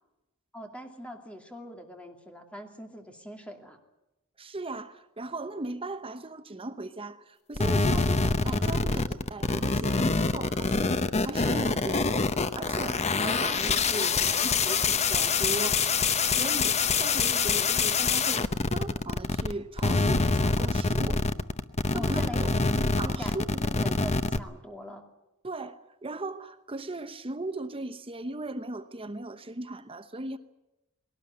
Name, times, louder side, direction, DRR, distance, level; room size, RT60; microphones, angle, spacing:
voice 1, 0.5-3.8 21.9-25.0, equal, 5° left, 2.6 m, -42 dB
voice 2, 4.4-15.9 16.2-21.2 21.9-22.5 23.0-23.5 25.4-30.4, right 2 dB, 25° right, 0.9 m, -38 dB
sound 1, 7.6-19.5 19.8-24.4, left 4 dB, 30° left, 0.8 m, -25 dB
20.0 x 18.0 x 9.6 m
head